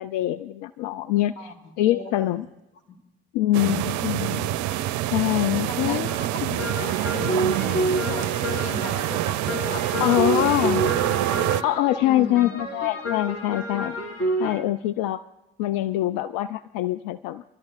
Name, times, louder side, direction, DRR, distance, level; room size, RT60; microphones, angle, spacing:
voice 1, 0.0-1.5 1.8-2.5 3.3-6.1 6.4-6.6 10.0-10.8 11.6-14.0 14.4-15.2 15.6-17.4, left 14 dB, 65° left, 12 dB, 0.5 m, -24 dB
voice 2, 1.4-2.5 2.9-3.0 5.5-6.0 6.3-11.0 12.0-12.6, left 3 dB, 85° left, 4 dB, 1.6 m, -38 dB
sound 1, 3.5-11.6, right 14 dB, 60° right, 0.5 m, -26 dB
Train, 5.4-12.8, equal, 30° left, 5.5 m, -49 dB
sound 2, 6.1-14.6, right 1 dB, 45° left, 3.2 m, -29 dB
30.0 x 12.5 x 2.4 m, 0.97 s
hypercardioid pair, 50°, 34 cm